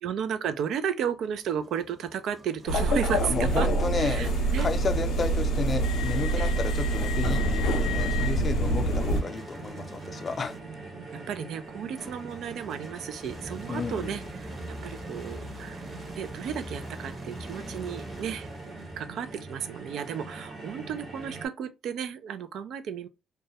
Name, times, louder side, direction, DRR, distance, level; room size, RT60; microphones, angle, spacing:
voice 1, 0.0-3.7 4.0-4.7 6.4-6.5 9.1-9.3 10.6-10.8 11.1-15.9 16.2-23.1, right 8 dB, 75° right, 0.3 m, -34 dB
sound 1, 1.2-2.9 3.8-10.8 12.0-19.3, right 1 dB, 30° right, 0.8 m, -45 dB
sound 2, 2.6-21.5, right 3 dB, 55° right, 1.0 m, -43 dB
sound 3, 2.7-9.2, right 1 dB, 85° left, 0.6 m, -26 dB
voice 2, 3.0-4.3 4.6-10.6 13.7-14.2, left 4 dB, 40° left, 0.4 m, -32 dB
2.3 x 2.1 x 2.7 m
cardioid pair, 90°, 0 cm